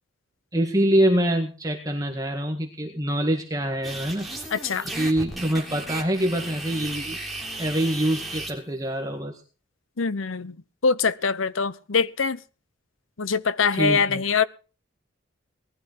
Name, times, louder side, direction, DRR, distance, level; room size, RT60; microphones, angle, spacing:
voice 1, 0.5-4.3 4.8-7.2 7.6-9.4 13.7-14.2, right 1 dB, 15° right, 1.8 m, -25 dB
sound 1, 3.8-8.5, right 2 dB, ahead, 3.5 m, -35 dB
voice 2, 4.5-4.9 10.0-10.6 10.8-12.4 13.2-14.4, left 5 dB, 80° left, 0.9 m, -23 dB
19.5 x 12.5 x 4.7 m
head